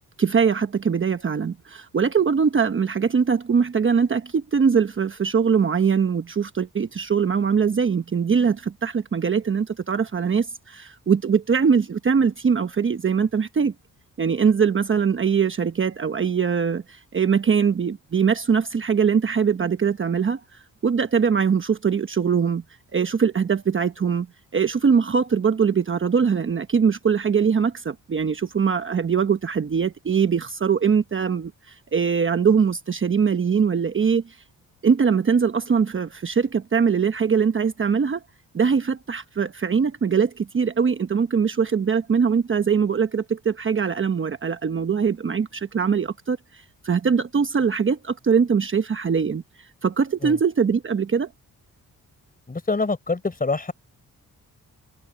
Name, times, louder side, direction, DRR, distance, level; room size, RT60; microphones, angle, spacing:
voice 1, 0.2-13.7 14.2-20.4 20.8-22.6 22.9-24.3 24.5-34.4 34.8-38.2 38.5-49.4 49.8-51.3, right 6 dB, 35° right, 1.1 m, -22 dB
voice 2, 52.5-53.7, left 3 dB, 25° left, 4.3 m, -25 dB
cardioid pair, 105°, 36 cm